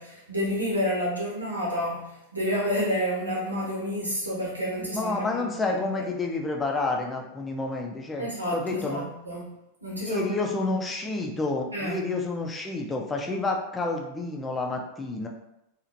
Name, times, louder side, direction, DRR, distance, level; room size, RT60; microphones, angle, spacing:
voice 1, 0.0-6.1 8.2-9.5 9.8-10.3 11.7-12.1, equal, 85° right, -5 dB, 0.9 m, -30 dB
voice 2, 4.8-9.1 10.1-15.3, left 3 dB, 15° left, 1 dB, 0.5 m, -29 dB
3.0 x 2.4 x 2.6 m, 0.87 s
figure-of-eight pair, 90°, 0 cm